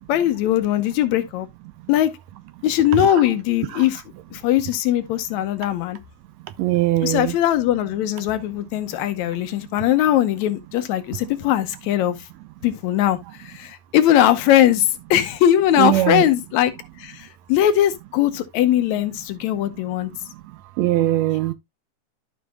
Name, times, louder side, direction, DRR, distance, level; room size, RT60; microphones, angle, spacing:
voice 1, 0.1-1.5 1.9-2.1 2.6-4.0 4.3-6.0 7.0-12.3 12.6-16.7 17.0-20.1, left 11 dB, 75° left, 2.1 m, -20 dB
voice 2, 6.6-7.3 15.8-16.2 20.8-21.5, right 15 dB, 80° right, 1.7 m, -20 dB
13.0 x 5.1 x 2.3 m
omnidirectional pair, 3.3 m